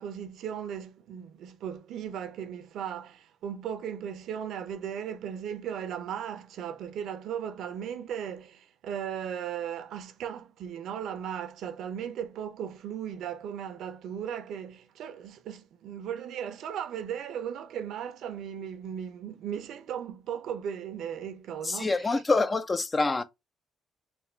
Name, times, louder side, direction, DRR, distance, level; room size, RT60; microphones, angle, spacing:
voice 1, 0.0-21.9, right 8 dB, 80° right, 0.6 m, -37 dB
voice 2, 21.6-23.2, left 3 dB, 25° left, 0.4 m, -26 dB
3.4 x 2.3 x 4.4 m
cardioid pair, 90°, 0 cm